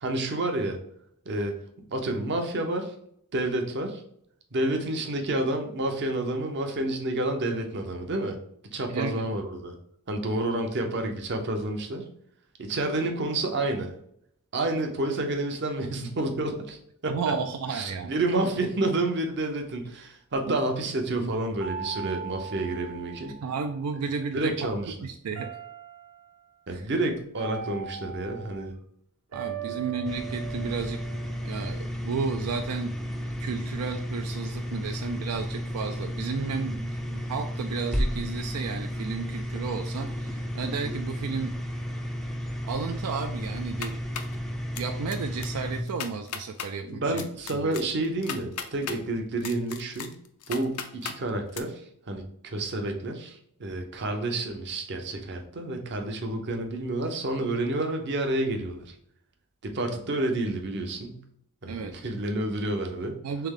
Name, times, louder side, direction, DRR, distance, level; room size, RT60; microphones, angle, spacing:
voice 1, 0.0-0.8 1.3-1.6 1.9-2.9 3.3-4.0 4.5-8.4 8.6-9.7 10.1-12.1 12.6-13.9 14.5-16.8 17.0-17.3 17.7-23.3 24.3-24.9 26.7-28.7 29.6-29.8 30.6-30.7 46.8-50.1 50.5-58.9 59.6-61.2 61.6-63.2, right 2 dB, 50° right, 4 dB, 0.7 m, -29 dB
voice 2, 8.9-9.3 17.1-18.1 20.5-20.6 21.2-21.3 23.4-24.7 25.0-25.5 26.7-26.9 29.3-31.0 31.4-33.0 33.4-41.6 42.6-44.0 44.8-47.2 47.6-47.8 61.7-61.9 63.2-63.5, right 5 dB, 85° right, 6 dB, 0.4 m, -33 dB
sound 1, 21.6-23.9 25.3-26.4 27.4-28.6 29.3-31.7, right 8 dB, 65° right, 1.1 m, -40 dB
sound 2, 30.0-45.8, equal, ahead, 0.4 m, -33 dB
sound 3, 43.6-44.4 44.7-45.2 45.4-45.5 45.9-46.7 47.2-49.0 49.4-51.2 51.5-51.6, left 7 dB, 90° left, 0.5 m, -36 dB
3.5 x 3.4 x 3.6 m, 0.70 s
head